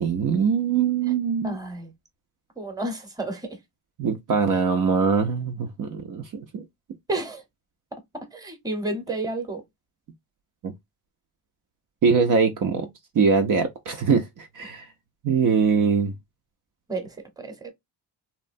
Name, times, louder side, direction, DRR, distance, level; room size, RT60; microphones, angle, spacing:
voice 1, 0.0-1.6 4.0-6.6 10.6-10.7 12.0-12.9 13.1-14.9 15.2-16.1, right 5 dB, 50° right, 0.6 m, -22 dB
voice 2, 1.4-1.9 2.6-3.6 7.1-7.4 8.3-9.6 16.9-17.1 17.4-17.7, right 2 dB, 10° right, 0.9 m, -31 dB
2.9 x 2.1 x 2.5 m
cardioid pair, 75°, 42 cm